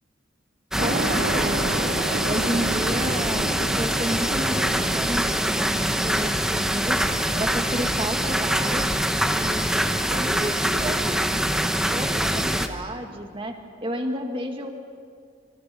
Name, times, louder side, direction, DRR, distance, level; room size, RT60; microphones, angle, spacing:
sound 1, 0.7-12.7, equal, 5° right, 1.0 m, -24 dB
voice 1, 0.8-1.8 2.2-7.0 7.4-8.9 9.3-9.6 10.1-11.2 11.9-14.7, equal, 25° right, 4 dB, 2.0 m, -31 dB
sound 2, 0.8-11.1, right 2 dB, 90° right, 2.3 m, -34 dB
27.0 x 25.5 x 5.2 m, 2.3 s
head